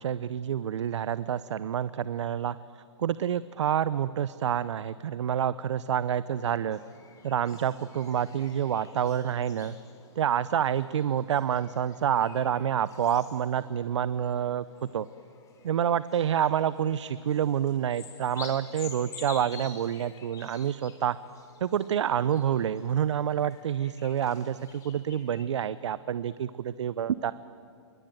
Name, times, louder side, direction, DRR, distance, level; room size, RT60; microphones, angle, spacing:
voice 1, 0.0-2.6 3.0-6.8 7.2-9.7 10.2-14.6 14.9-15.1 15.6-21.2 21.6-27.3, right 9 dB, 65° right, 16 dB, 0.7 m, -28 dB
sound 1, 6.7-25.4, left 5 dB, 20° left, 4.1 m, -50 dB
28.0 x 23.5 x 9.1 m, 2.4 s
hypercardioid pair, 125°, 16 cm